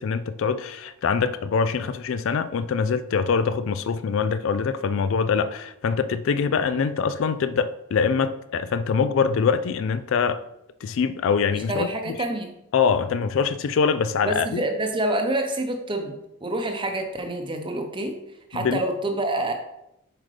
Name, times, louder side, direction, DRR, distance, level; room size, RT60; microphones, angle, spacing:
voice 1, 0.0-10.4 10.8-11.9 12.7-14.6 18.5-18.8, left 5 dB, 60° left, 13 dB, 0.3 m, -24 dB
voice 2, 11.7-12.5 14.2-16.1 16.4-18.2 18.5-19.5, right 1 dB, 20° right, 4 dB, 0.7 m, -27 dB
7.5 x 5.0 x 3.3 m, 0.85 s
head